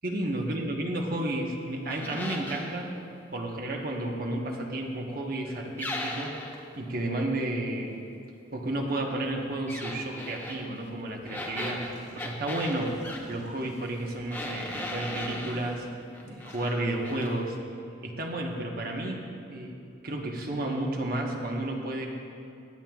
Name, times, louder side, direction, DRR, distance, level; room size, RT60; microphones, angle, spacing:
voice 1, 0.0-2.9 3.3-6.4 6.8-7.9 8.5-11.9 12.2-13.0 13.3-15.9 16.2-17.6 18.0-22.1, right 1 dB, 55° right, 1 dB, 1.1 m, -32 dB
sound 1, 1.9-2.7 5.8-6.6 9.7-10.6 11.3-13.2 14.3-15.6 16.1-16.7 17.0-17.3, left 1 dB, 10° left, 0.9 m, -37 dB
sound 2, 11.1-16.7, equal, 65° left, 2.3 m, -51 dB
16.5 x 9.7 x 2.4 m, 2.6 s
head